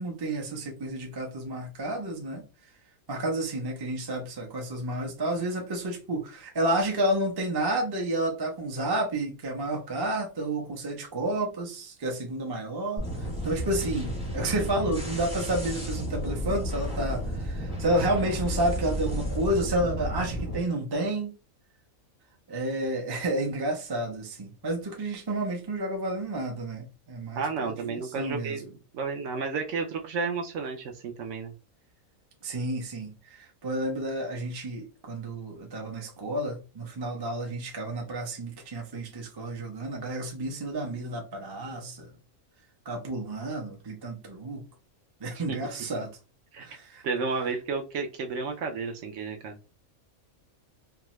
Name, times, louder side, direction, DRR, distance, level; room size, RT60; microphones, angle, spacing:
voice 1, 0.0-2.4 3.1-21.3 22.5-28.6 32.4-42.1 42.9-44.6 45.2-46.2 46.6-47.0, right 1 dB, 30° right, 0.4 m, -30 dB
sound 1, 13.0-20.6, equal, 5° right, 0.7 m, -32 dB
voice 2, 27.4-31.5 45.5-45.6 46.5-46.7 47.0-49.7, right 4 dB, 70° right, 0.9 m, -32 dB
2.7 x 2.3 x 3.0 m
omnidirectional pair, 1.5 m